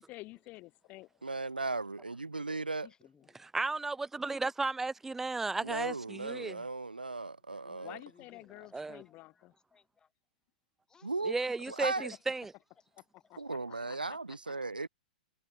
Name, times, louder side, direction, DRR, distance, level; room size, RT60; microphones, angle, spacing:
voice 1, 0.0-1.2 2.8-2.9 7.8-9.5 13.3-14.5, left 20 dB, 35° left, 2.2 m, -50 dB
voice 2, 1.2-2.9 5.6-8.0 11.0-11.3 11.7-12.1 13.4-14.9, right 3 dB, 85° right, 0.6 m, -36 dB
voice 3, 2.9-3.5 7.5-10.1 10.9-11.8 12.1-12.3 12.8-12.9 13.2-13.9, left 6 dB, 15° left, 3.7 m, -65 dB
voice 4, 3.5-6.6 8.7-9.0 11.3-12.5, right 3 dB, 5° right, 0.4 m, -34 dB
figure-of-eight pair, 105°, 5 cm